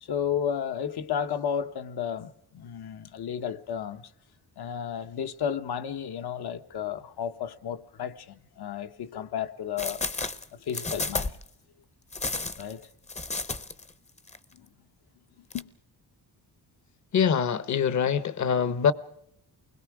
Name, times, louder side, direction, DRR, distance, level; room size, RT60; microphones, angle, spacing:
voice 1, 0.0-4.1 4.6-10.0 10.5-11.3 12.6-12.9 14.6-14.7 15.4-15.7, left 8 dB, 70° left, 1.2 m, -33 dB
sound 1, 9.8-11.5 12.1-13.9 14.2-14.4 15.5-15.6, left 3 dB, 15° left, 0.7 m, -32 dB
voice 2, 17.1-18.9, left 7 dB, 45° left, 1.0 m, -24 dB
29.0 x 21.5 x 4.8 m
wide cardioid pair, 155°, 40 cm